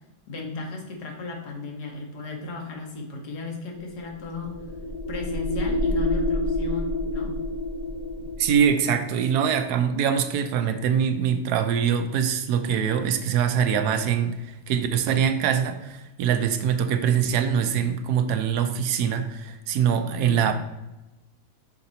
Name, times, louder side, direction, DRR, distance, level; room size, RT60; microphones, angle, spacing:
voice 1, 0.3-4.6 5.1-7.4 20.0-20.5, left 3 dB, 80° left, 1 dB, 1.8 m, -35 dB
sound 1, 3.8-8.7, left 2 dB, 40° left, 1.3 m, -28 dB
voice 2, 8.4-20.5, right 8 dB, 80° right, 8 dB, 1.1 m, -23 dB
5.9 x 4.3 x 4.0 m, 0.98 s
omnidirectional pair, 1.7 m